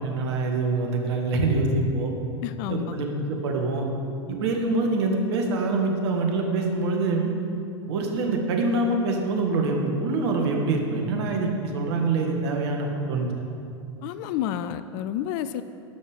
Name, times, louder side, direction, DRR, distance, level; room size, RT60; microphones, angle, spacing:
voice 1, 0.0-2.1 2.7-3.9 4.3-7.3 7.9-13.3, right 3 dB, 60° right, 2 dB, 1.8 m, -25 dB
voice 2, 2.4-3.0 14.0-15.6, left 10 dB, 50° left, 12 dB, 0.5 m, -30 dB
12.5 x 5.5 x 6.5 m, 2.5 s
figure-of-eight pair, 95°, 15 cm